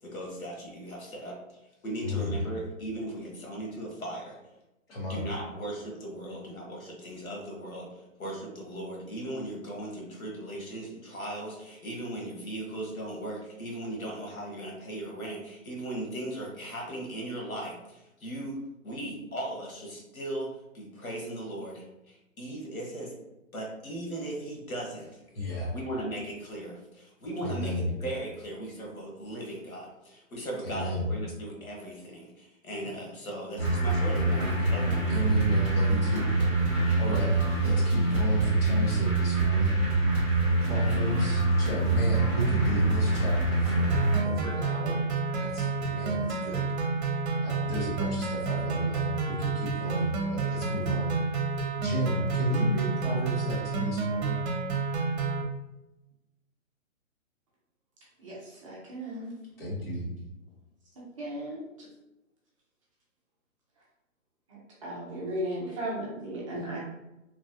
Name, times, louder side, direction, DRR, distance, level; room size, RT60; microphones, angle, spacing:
voice 1, 0.0-4.4 5.1-18.6 18.8-23.1 23.5-25.1 25.7-35.0, right 1 dB, 90° left, -1 dB, 1.3 m, -38 dB
voice 2, 2.0-2.4 4.9-5.2 25.3-25.8 27.4-27.9 30.6-31.1 35.1-36.3 37.0-39.8 40.6-43.9 44.2-45.1 45.4-46.7 47.4-51.2 51.8-54.4 59.6-60.1, equal, 45° left, -4 dB, 1.4 m, -32 dB
sound 1, 33.6-44.2, right 2 dB, 15° left, 1.1 m, -25 dB
sound 2, 43.9-55.4, right 4 dB, 55° right, 0.8 m, -30 dB
voice 3, 58.2-59.3 61.0-61.6 64.5-66.8, right 1 dB, 25° right, -6 dB, 0.6 m, -36 dB
3.1 x 2.4 x 2.6 m, 0.94 s
hypercardioid pair, 145°, 40 cm